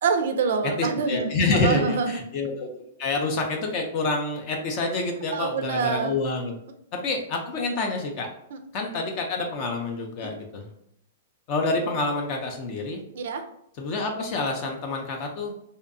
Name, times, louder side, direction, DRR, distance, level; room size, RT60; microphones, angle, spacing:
voice 1, 0.0-2.1 5.3-6.2 13.1-13.4, right 5 dB, 70° right, 7 dB, 0.3 m, -26 dB
voice 2, 0.8-2.7 3.0-6.6 6.9-8.3 8.7-10.7 11.5-13.0 13.8-15.5, left 3 dB, 40° left, 2 dB, 0.4 m, -27 dB
2.6 x 2.1 x 2.5 m, 0.75 s
hypercardioid pair, 135°, 0 cm